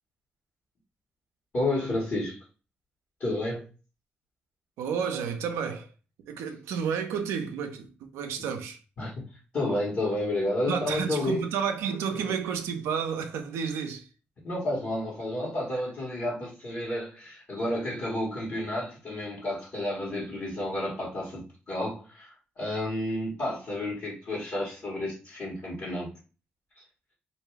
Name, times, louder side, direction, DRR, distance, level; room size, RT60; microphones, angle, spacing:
voice 1, 1.5-2.4 3.2-3.6 9.0-9.1 9.5-11.4 12.2-12.3 14.4-22.3 22.6-26.1 26.8-26.9, left 1 dB, 60° left, 1.2 m, -31 dB
voice 2, 4.8-5.9 6.3-8.8 10.7-14.1 15.7-15.8, right 7 dB, 85° right, 0.4 m, -31 dB
2.5 x 2.3 x 3.2 m
supercardioid pair, 55°, 5 cm